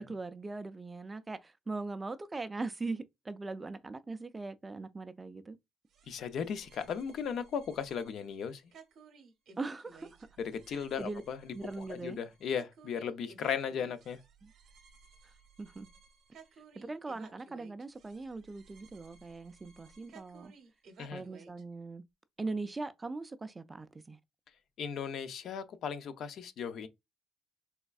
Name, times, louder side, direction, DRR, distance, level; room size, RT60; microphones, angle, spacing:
voice 1, 0.0-5.6 9.6-10.1 10.7-11.2 11.5-12.2 14.4-14.5 15.2-15.3 15.6-15.9 16.8-20.5 21.1-22.0 22.4-24.2, right 3 dB, 15° right, 0.3 m, -40 dB
sound 1, 5.9-21.6, right 5 dB, 55° right, 0.8 m, -58 dB
voice 2, 6.1-8.6 10.4-11.4 12.0-14.2 21.0-21.2 24.8-26.9, left 7 dB, 55° left, 0.5 m, -36 dB
3.4 x 3.1 x 2.3 m
cardioid pair, 140°, 0 cm